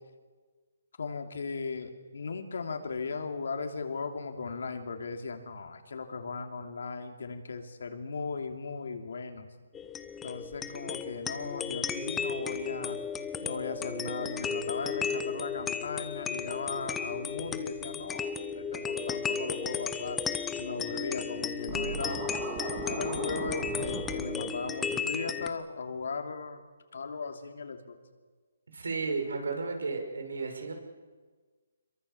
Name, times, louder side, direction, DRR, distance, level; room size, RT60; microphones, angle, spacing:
voice 1, 1.0-9.5 10.2-13.0 13.4-20.2 20.6-22.2 22.8-26.6 26.9-28.0, left 4 dB, 60° left, 5 dB, 3.0 m, -37 dB
sound 1, 9.7-25.5, left 6 dB, 5° left, 0.7 m, -35 dB
Scratching (performance technique), 21.7-24.2, right 4 dB, 15° right, 2.6 m, -37 dB
voice 2, 28.7-30.7, right 4 dB, 80° right, 4 dB, 6.4 m, -33 dB
27.0 x 23.0 x 7.1 m, 1.4 s
hypercardioid pair, 175°, 0 cm